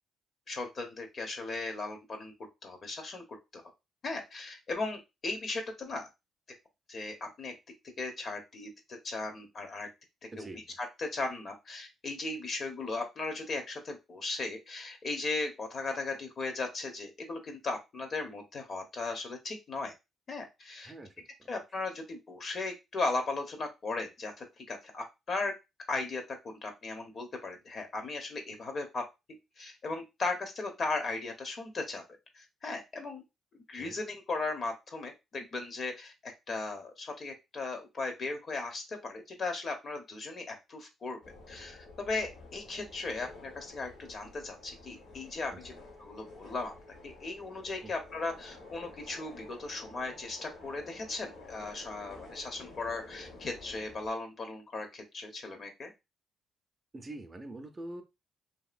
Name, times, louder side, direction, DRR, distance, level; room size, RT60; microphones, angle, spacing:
voice 1, 0.5-2.3 2.6-3.2 3.5-3.6 4.0-6.1 6.9-7.5 8.0-9.9 10.4-10.5 10.8-19.9 20.3-20.9 21.5-25.5 25.9-29.0 29.6-32.0 32.3-33.2 33.7-41.2 41.5-45.7 46.0-46.7 47.0-55.9, left 3 dB, 50° left, 4 dB, 0.9 m, -37 dB
voice 2, 10.3-10.6 20.8-21.5 33.8-34.0 45.5-45.6 47.8-47.9 56.9-58.0, right 2 dB, 25° right, 5 dB, 0.6 m, -45 dB
sound 1, 41.2-54.1, left 2 dB, 70° left, 1.3 m, -51 dB
2.8 x 2.7 x 2.4 m, 0.24 s
cardioid pair, 90°, 0 cm